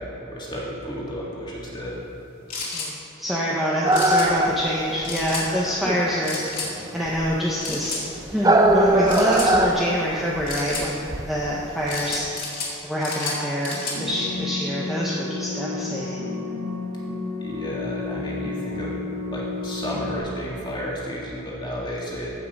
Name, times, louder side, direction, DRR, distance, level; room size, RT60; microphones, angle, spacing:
voice 1, 0.0-2.0 17.4-18.9 19.3-22.3, equal, 20° left, -5 dB, 2.1 m, -32 dB
sound 1, 2.5-2.9 3.9-4.3 5.0-5.5 6.2-6.7 7.6-8.0 9.1-9.5 10.5-10.9 11.9-12.7 13.0-14.0, left 4 dB, 40° left, 2.3 m, -31 dB
voice 2, 2.7-6.4 6.9-8.0 8.3-12.4 12.8-16.2, equal, ahead, -7 dB, 0.9 m, -26 dB
sound 2, 3.8-12.4, right 1 dB, 15° right, 0.5 m, -22 dB
sound 3, 13.9-20.2, left 3 dB, 75° right, 1.5 m, -31 dB
15.0 x 5.7 x 5.4 m, 2.7 s
head